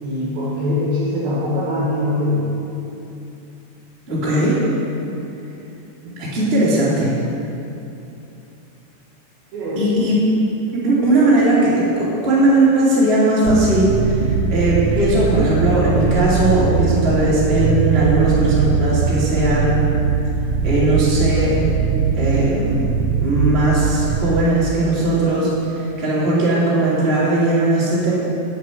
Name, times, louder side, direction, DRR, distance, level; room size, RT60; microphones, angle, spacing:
voice 1, 0.0-2.5 6.2-6.3 9.5-10.0, left 1 dB, 60° right, -7 dB, 2.8 m, -22 dB
voice 2, 4.1-4.6 6.2-7.1 9.8-10.1 10.7-19.8 20.6-21.5 22.2-22.9 23.2-28.1, right 1 dB, 20° right, -8 dB, 1.7 m, -18 dB
sound 1, 13.4-24.4, right 6 dB, 85° right, 3.2 m, -20 dB
7.9 x 7.7 x 8.3 m, 2.8 s
omnidirectional pair, 5.9 m